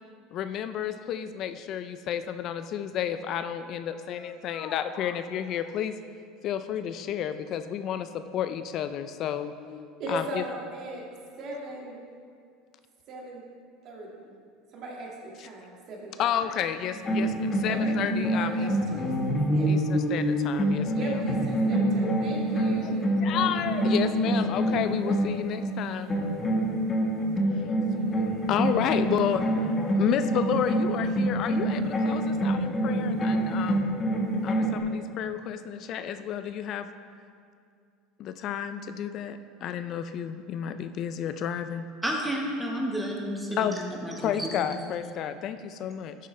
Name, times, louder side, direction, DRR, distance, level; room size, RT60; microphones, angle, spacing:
voice 1, 0.3-5.9 6.4-10.4 15.4-15.5 16.2-18.7 19.7-21.2 22.8-22.9 23.2-26.1 27.3-29.7 30.0-33.9 34.4-36.9 38.2-41.8 43.6-43.8 44.2-46.2, left 9 dB, 50° left, 10 dB, 0.4 m, -31 dB
voice 2, 10.0-11.0 11.4-12.0 13.1-13.4 13.8-14.3 14.7-16.3 17.6-18.0 18.3-19.7 20.9-23.1, right 1 dB, 50° right, -2 dB, 1.9 m, -38 dB
sound 1, 16.9-25.7 26.1-34.8, right 1 dB, 25° left, 1.5 m, -26 dB
voice 3, 42.0-44.7, equal, 5° right, -1 dB, 1.3 m, -31 dB
11.0 x 7.3 x 3.3 m, 2.3 s
supercardioid pair, 125°, 0 cm